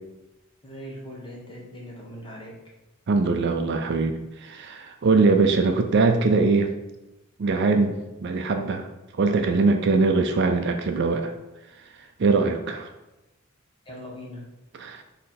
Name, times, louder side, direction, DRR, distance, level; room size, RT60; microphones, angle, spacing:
voice 1, 0.6-2.5 13.8-14.5, equal, 25° left, -3 dB, 1.1 m, -40 dB
voice 2, 3.1-6.7 7.4-8.9 9.2-11.3 12.2-12.9 14.8-15.0, right 3 dB, 55° right, 6 dB, 0.4 m, -22 dB
4.0 x 3.1 x 4.2 m, 0.99 s
head